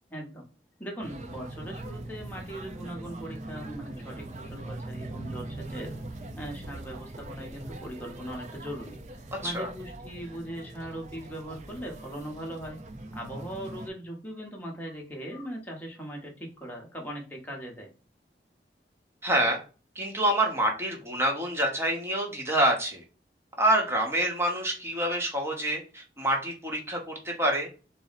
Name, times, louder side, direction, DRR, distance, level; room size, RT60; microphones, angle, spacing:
voice 1, 0.1-0.5 0.8-5.9 6.4-9.0 9.4-12.8 13.1-17.9, right 1 dB, 10° left, -1 dB, 0.9 m, -39 dB
sound 1, 1.0-13.9, right 2 dB, 40° right, 0.5 m, -41 dB
voice 2, 19.2-19.6 20.0-23.0 23.6-27.7, right 1 dB, 15° right, 0 dB, 0.9 m, -27 dB
4.0 x 2.1 x 4.0 m, 0.34 s
head